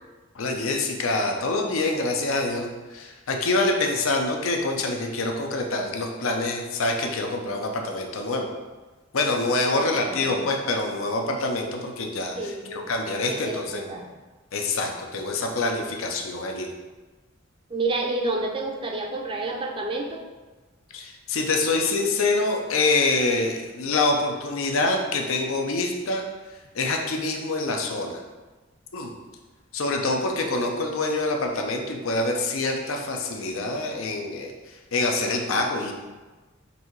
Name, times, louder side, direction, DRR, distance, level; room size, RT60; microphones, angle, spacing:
voice 1, 0.3-8.5 9.1-13.8 14.5-16.7 20.9-26.2 26.7-28.2 28.9-29.1 29.7-34.5 34.9-35.9, left 2 dB, 80° left, 2 dB, 0.6 m, -26 dB
voice 2, 9.7-10.5 12.3-12.9 13.3-14.1 17.7-20.2, right 2 dB, 25° right, 2 dB, 0.5 m, -30 dB
4.1 x 2.7 x 4.5 m, 1.2 s
head